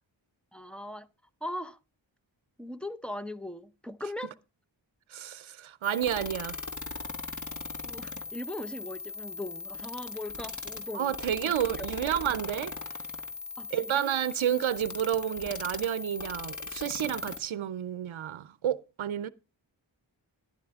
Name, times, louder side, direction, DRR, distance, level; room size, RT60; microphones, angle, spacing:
voice 1, 0.5-1.1 1.4-1.8 2.6-4.4 7.8-11.1 11.4-11.9 13.6-14.2, left 1 dB, ahead, 0.6 m, -39 dB
voice 2, 5.1-6.6 10.9-12.7 13.7-19.3, right 10 dB, 85° right, 0.6 m, -30 dB
sound 1, 5.8-17.4, left 3 dB, 40° left, 1.3 m, -39 dB
13.0 x 11.5 x 3.5 m
wide cardioid pair, 90°, 46 cm